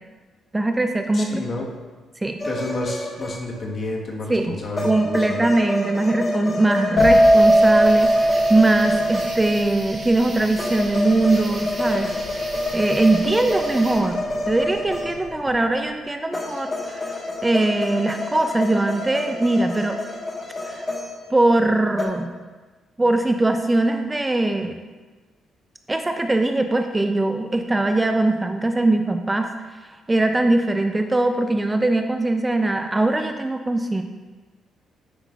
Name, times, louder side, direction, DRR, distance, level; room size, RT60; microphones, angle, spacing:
voice 1, 0.5-1.4 2.2-2.4 4.3-4.5 4.8-12.1 12.7-20.0 20.6-20.9 21.3-22.3 23.0-24.7 25.9-29.5 30.1-34.0, right 2 dB, 15° right, 6 dB, 0.4 m, -21 dB
voice 2, 1.1-1.7 2.4-5.5, left 2 dB, 45° left, -1 dB, 1.3 m, -30 dB
sound 1, 2.4-3.8 4.8-9.7 10.6-15.5 16.3-21.6 22.0-22.1, left 1 dB, 25° left, 1.3 m, -28 dB
sound 2, 7.0-14.5 14.8-15.3, right 1 dB, 60° left, 1.5 m, -19 dB
sound 3, 7.0-14.0, right 2 dB, 40° right, 1.1 m, -38 dB
9.7 x 5.6 x 2.4 m, 1.3 s
cardioid pair, 90°, 0 cm